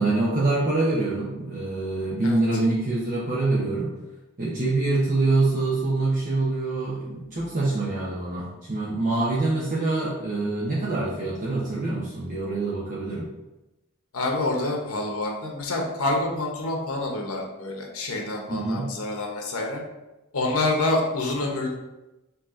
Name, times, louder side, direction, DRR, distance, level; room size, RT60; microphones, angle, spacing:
voice 1, 0.0-3.9 4.4-13.3 18.5-18.9, right 2 dB, 40° right, -7 dB, 0.9 m, -25 dB
voice 2, 14.1-19.8 20.3-21.7, left 2 dB, 90° left, 0 dB, 1.0 m, -27 dB
4.6 x 3.0 x 3.7 m, 1.0 s
head